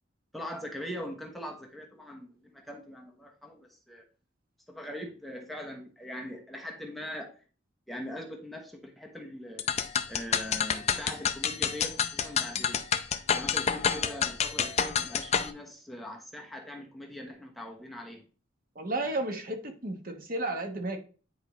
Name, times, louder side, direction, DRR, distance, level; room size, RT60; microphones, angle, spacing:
voice 1, 0.3-4.1 4.7-7.4 7.9-9.8 10.1-12.8 13.3-18.2, equal, ahead, 1 dB, 0.9 m, -41 dB
sound 1, 9.6-15.5, left 7 dB, 35° left, 0.5 m, -28 dB
voice 2, 18.7-21.0, right 2 dB, 45° right, 5 dB, 1.1 m, -33 dB
9.7 x 4.6 x 3.1 m, 0.37 s
head